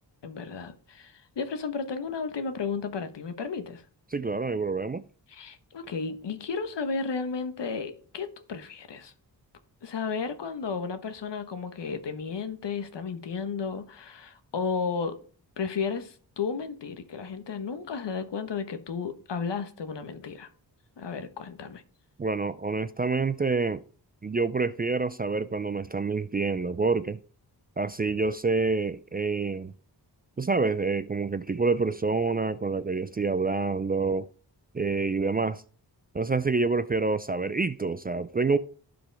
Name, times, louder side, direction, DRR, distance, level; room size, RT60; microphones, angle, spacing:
voice 1, 0.2-3.8 5.3-9.1 9.8-15.2 15.6-20.5 21.0-21.8, left 5 dB, 75° left, 1.4 m, -33 dB
voice 2, 4.1-5.0 22.2-23.8 24.2-27.2 27.8-29.7 30.4-34.3 34.7-35.6 36.1-38.6, right 4 dB, 25° right, 0.3 m, -27 dB
15.5 x 5.2 x 3.4 m
wide cardioid pair, 120°, 42 cm